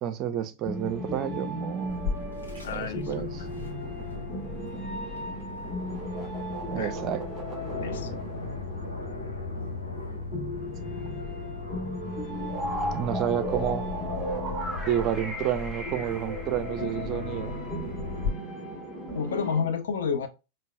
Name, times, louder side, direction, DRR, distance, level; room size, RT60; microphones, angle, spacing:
voice 1, 0.0-2.3 2.7-3.4 6.7-7.2 12.9-13.9 14.9-17.5, right 10 dB, 35° right, 0.5 m, -30 dB
sound 1, 0.6-19.6, left 1 dB, 20° left, 1.6 m, -38 dB
sound 2, 0.7-10.8 11.1-11.2 12.1-19.7, right 1 dB, 5° right, 1.9 m, -39 dB
Aircraft, 1.9-18.3, left 3 dB, 80° left, 1.0 m, -37 dB
voice 2, 2.6-3.1 6.7-6.9 7.8-8.2 19.1-20.3, left 6 dB, 60° left, 0.6 m, -29 dB
5.5 x 2.1 x 2.4 m
figure-of-eight pair, 90°, 0 cm